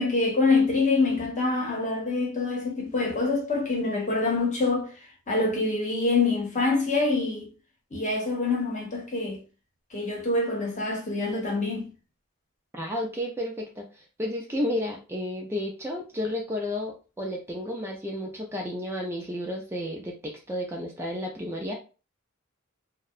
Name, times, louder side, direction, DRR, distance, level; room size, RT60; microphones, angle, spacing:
voice 1, 0.0-4.9 5.3-7.5 7.9-9.4 9.9-11.9, left 3 dB, 35° left, 0.9 m, -25 dB
voice 2, 12.7-21.7, left 1 dB, 10° right, 0.3 m, -32 dB
2.7 x 2.1 x 2.4 m
head